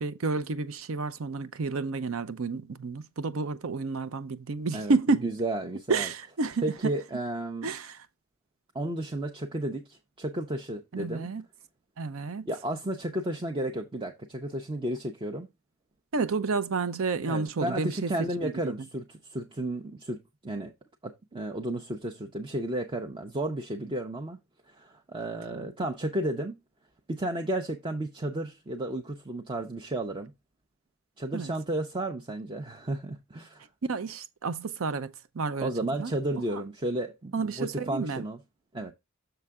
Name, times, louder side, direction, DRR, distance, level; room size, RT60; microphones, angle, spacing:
voice 1, 0.0-5.3 5.9-6.9 7.6-8.0 10.9-11.4 12.0-12.5 16.1-18.7 31.3-31.5 33.9-35.7 36.0-36.1 37.3-38.2, right 4 dB, 70° right, 0.6 m, -30 dB
voice 2, 5.2-6.1 6.6-7.7 8.7-11.3 12.5-15.5 17.3-20.7 21.0-24.4 24.7-26.6 27.1-30.3 31.2-33.7 35.6-38.4 38.7-38.9, right 1 dB, 25° right, 0.6 m, -33 dB
6.8 x 5.5 x 3.5 m
head